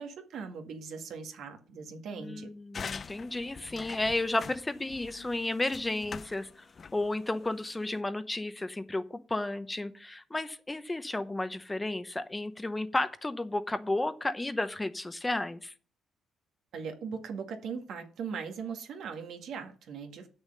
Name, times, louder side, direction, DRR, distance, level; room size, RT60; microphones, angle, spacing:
voice 1, 0.0-2.5 16.7-20.3, right 6 dB, 75° right, 5 dB, 1.9 m, -39 dB
voice 2, 2.1-6.6 6.9-15.7, left 2 dB, 15° left, 12 dB, 0.8 m, -33 dB
sound 1, 2.7-8.0, left 5 dB, 40° left, 0.4 m, -44 dB
8.0 x 6.6 x 6.5 m, 0.42 s
cardioid pair, 90°, 0 cm